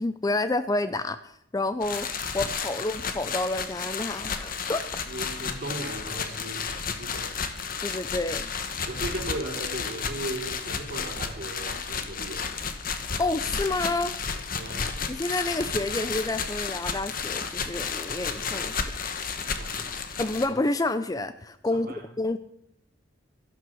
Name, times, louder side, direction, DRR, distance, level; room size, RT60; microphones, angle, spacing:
voice 1, 0.0-4.9 7.8-8.5 13.2-14.2 15.1-18.8 20.2-21.9 22.2-22.4, left 2 dB, 20° left, 12 dB, 0.5 m, -29 dB
sound 1, 1.8-20.5, left 5 dB, 45° left, 1.1 m, -32 dB
voice 2, 5.1-7.4 8.9-12.5 14.5-14.9 19.6-20.4 21.7-22.0, right 1 dB, 50° right, 1 dB, 3.4 m, -37 dB
12.5 x 11.5 x 6.3 m, 0.76 s
head